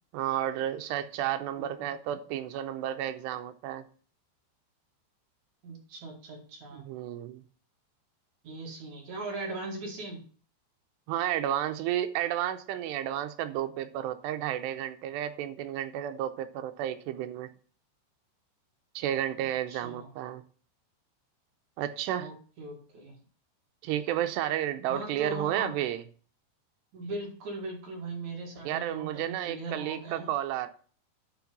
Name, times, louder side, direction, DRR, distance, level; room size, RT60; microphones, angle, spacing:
voice 1, 0.1-3.9 6.7-7.4 11.1-17.5 19.0-20.4 21.8-22.3 23.8-26.0 28.7-30.7, right 11 dB, 85° right, 9 dB, 2.6 m, -32 dB
voice 2, 5.6-6.8 8.4-10.2 19.7-20.1 22.2-23.2 24.9-25.7 26.9-30.3, right 2 dB, 50° right, 0 dB, 2.7 m, -39 dB
10.5 x 4.6 x 6.0 m, 0.42 s
omnidirectional pair, 5.2 m